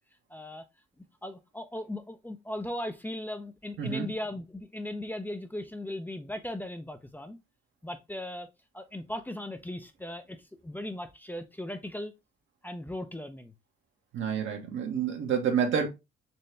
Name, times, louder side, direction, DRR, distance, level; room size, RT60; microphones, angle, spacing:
voice 1, 0.3-0.6 1.0-7.4 7.8-8.5 8.7-10.4 10.6-12.1 12.6-13.5, left 1 dB, 10° left, 0.6 m, -38 dB
voice 2, 3.8-4.1 14.1-15.9, right 7 dB, 75° right, 1.5 m, -28 dB
4.3 x 3.2 x 3.2 m
cardioid pair, 90°, 20 cm